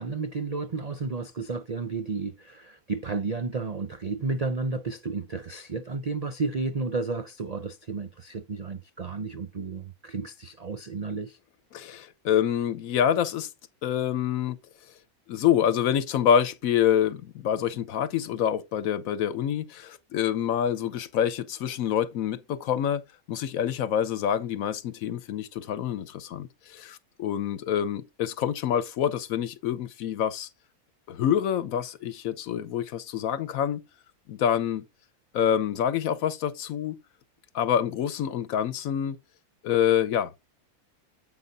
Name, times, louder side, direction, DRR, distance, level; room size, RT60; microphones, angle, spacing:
voice 1, 0.0-11.4, right 4 dB, 90° right, 0.3 m, -32 dB
voice 2, 11.7-13.5 13.8-14.6 15.3-23.0 23.3-30.5 31.1-33.8 34.3-34.8 35.3-36.9 37.5-39.2 39.6-40.4, left 9 dB, 70° left, 1.1 m, -26 dB
7.8 x 5.4 x 3.9 m
omnidirectional pair, 1.6 m